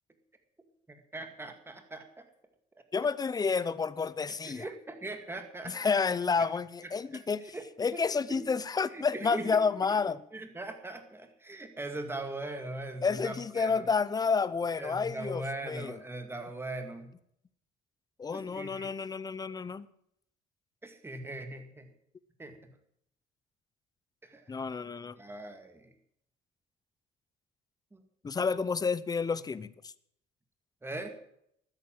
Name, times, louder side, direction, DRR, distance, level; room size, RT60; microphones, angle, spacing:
voice 1, 0.9-2.2 4.4-5.8 6.4-6.5 6.8-7.2 7.5-7.6 7.9-8.5 8.9-9.5 10.3-13.9 14.8-17.1 18.3-19.0 20.8-21.9 22.4-22.5 24.2-24.5 25.2-25.9 27.9-28.0 30.8-31.2, right 2 dB, 15° right, 6 dB, 2.1 m, -40 dB
voice 2, 2.9-4.7 5.6-10.2 13.0-16.0 18.2-19.9 24.5-25.2 28.2-29.9, left 5 dB, 20° left, 17 dB, 0.7 m, -30 dB
13.0 x 10.0 x 7.5 m, 0.73 s
cardioid pair, 110°, 17 cm